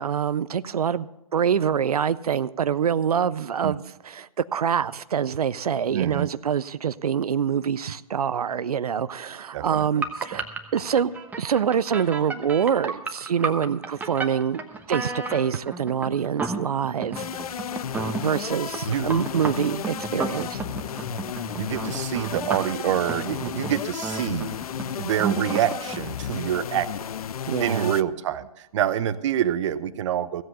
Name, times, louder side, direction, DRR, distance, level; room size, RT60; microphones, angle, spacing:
voice 1, 0.0-10.4 10.7-11.1 11.4-14.6 14.9-17.3 18.2-20.6 27.5-27.9, right 8 dB, 85° right, 16 dB, 0.5 m, -25 dB
voice 2, 5.9-6.3 9.5-9.9 10.3-10.4 10.7-10.8 18.9-19.1 21.6-24.5 25.0-26.9 27.6-30.4, right 10 dB, 55° right, 15 dB, 0.8 m, -26 dB
sound 1, 10.0-26.0, right 4 dB, 10° right, 1.0 m, -32 dB
sound 2, 17.2-28.0, left 9 dB, 75° left, 0.4 m, -33 dB
15.5 x 7.7 x 6.6 m, 0.94 s
hypercardioid pair, 125°, 19 cm